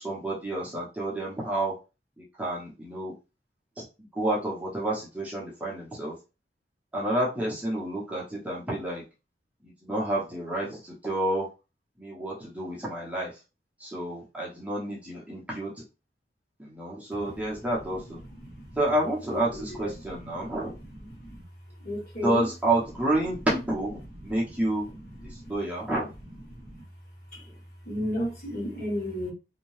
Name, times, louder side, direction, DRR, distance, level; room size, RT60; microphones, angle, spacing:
voice 1, 0.0-1.7 2.2-3.1 3.8-3.9 4.1-6.1 6.9-9.0 9.6-11.5 12.0-13.3 13.8-15.7 16.6-18.2 18.8-20.7 22.2-24.9 25.2-26.1, right 1 dB, 10° right, 0.7 m, -29 dB
voice 2, 19.3-19.9 20.2-20.6 21.0-21.4 21.8-22.4 24.9-25.0 25.4-25.5 26.5-26.8 27.3-27.4 27.9-29.3, equal, 50° left, 1.3 m, -33 dB
2.6 x 2.2 x 3.1 m
head